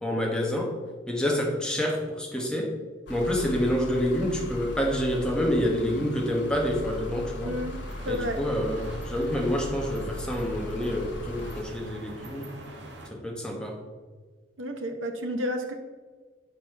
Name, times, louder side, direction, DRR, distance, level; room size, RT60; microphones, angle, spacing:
voice 1, 0.0-0.8 1.1-2.7 3.1-7.6 8.1-12.5 13.1-13.7, equal, 5° left, -1 dB, 1.2 m, -28 dB
sound 1, 3.1-11.6, left 1 dB, 70° left, 1.1 m, -38 dB
voice 2, 7.4-7.8 8.0-8.4 14.6-15.7, equal, 90° right, 3 dB, 1.0 m, -31 dB
sound 2, 7.5-13.1, right 1 dB, 65° right, 1.3 m, -44 dB
9.3 x 4.3 x 5.7 m, 1.4 s
head